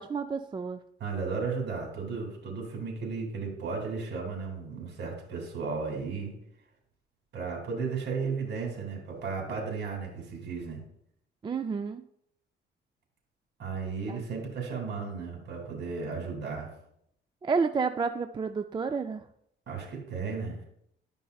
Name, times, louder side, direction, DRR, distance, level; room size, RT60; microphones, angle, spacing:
voice 1, 0.0-0.8 11.4-12.0 14.1-14.2 17.4-19.2, right 5 dB, 25° right, 8 dB, 0.4 m, -30 dB
voice 2, 1.0-6.3 7.3-10.8 13.6-16.7 19.7-20.6, right 5 dB, 60° right, 0 dB, 2.9 m, -34 dB
11.5 x 5.3 x 2.3 m, 0.72 s
cardioid pair, 90°, 20 cm